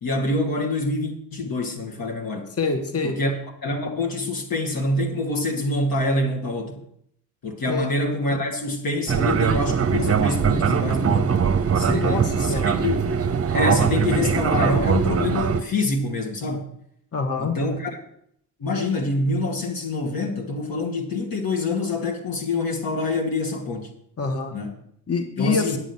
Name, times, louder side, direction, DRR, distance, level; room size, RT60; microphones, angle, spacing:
voice 1, 0.0-2.5 3.0-3.3 3.6-6.8 7.4-11.3 11.8-13.0 13.5-16.7 17.4-18.0 18.6-23.9 24.5-24.7 25.4-25.8, left 2 dB, 50° left, 1 dB, 2.1 m, -26 dB
voice 2, 2.6-3.2 7.6-7.9 11.9-12.7 17.1-17.5 24.2-24.5 25.1-25.8, left 4 dB, 30° left, 6 dB, 1.6 m, -25 dB
Fixed-wing aircraft airplane, 9.1-15.6, right 6 dB, 30° right, 1.0 m, -21 dB
9.1 x 8.1 x 5.7 m, 0.71 s
hypercardioid pair, 50°, 46 cm